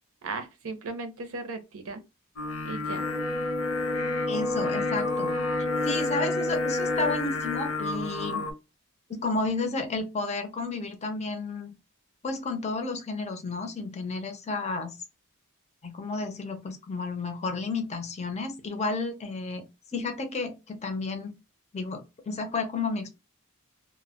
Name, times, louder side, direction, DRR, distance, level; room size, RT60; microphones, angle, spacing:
voice 1, 0.2-2.0 2.6-3.0, right 3 dB, 70° right, 0.6 m, -36 dB
Singing, 2.4-8.5, left 3 dB, 75° left, 0.7 m, -32 dB
Brass instrument, 3.0-7.2, left 2 dB, 20° right, 0.3 m, -30 dB
voice 2, 4.3-5.3 5.8-8.5 9.1-11.7 12.2-15.0 15.8-19.6 19.9-21.3 21.7-23.2, left 3 dB, 30° left, 0.6 m, -32 dB
2.2 x 2.1 x 3.5 m
head